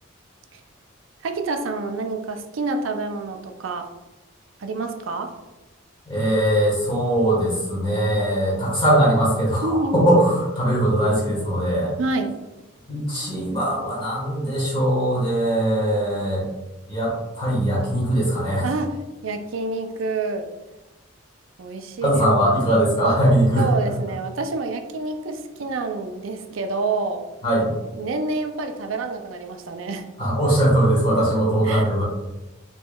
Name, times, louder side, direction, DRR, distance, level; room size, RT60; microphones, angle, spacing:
voice 1, 1.2-3.9 4.6-5.3 9.6-10.0 12.0-12.4 18.6-19.0 19.2-20.5 21.6-22.2 22.6-22.9 23.6-27.2 28.0-30.1 31.6-31.9, right 3 dB, 80° right, 7 dB, 0.4 m, -28 dB
voice 2, 6.1-11.9 12.9-16.4 16.9-18.6 22.0-23.7 27.4-27.7 30.2-32.0, right 1 dB, 25° left, -6 dB, 1.3 m, -20 dB
4.3 x 3.1 x 2.3 m, 1.0 s
head